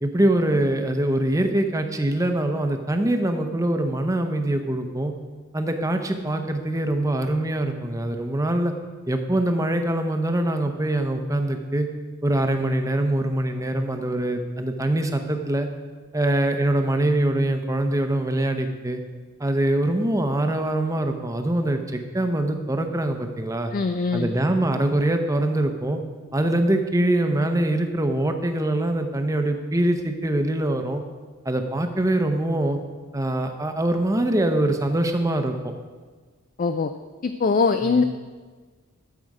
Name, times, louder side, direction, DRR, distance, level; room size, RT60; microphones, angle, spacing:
voice 1, 0.0-5.1 5.5-8.7 9.1-11.9 12.2-15.7 16.1-19.0 19.4-23.7 24.1-26.0 26.3-31.0 31.4-32.8 33.1-35.7 37.8-38.0, right 1 dB, 15° right, 6 dB, 0.7 m, -23 dB
voice 2, 23.7-24.3 36.6-36.9 37.2-38.0, left 4 dB, 40° left, 9 dB, 0.3 m, -22 dB
13.0 x 7.7 x 4.8 m, 1.5 s
head